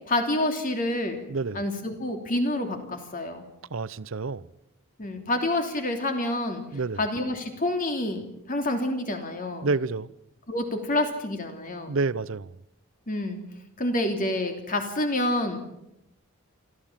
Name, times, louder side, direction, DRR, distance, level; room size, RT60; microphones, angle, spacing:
voice 1, 0.1-1.2 1.5-3.4 5.0-6.6 7.0-9.7 10.5-11.9 13.1-13.4 13.8-15.6, left 1 dB, 40° left, 3.1 m, -28 dB
voice 2, 1.3-1.6 3.7-4.5 6.7-7.1 9.6-10.1 11.9-12.6, right 3 dB, 65° right, 0.7 m, -29 dB
26.0 x 14.5 x 7.4 m
head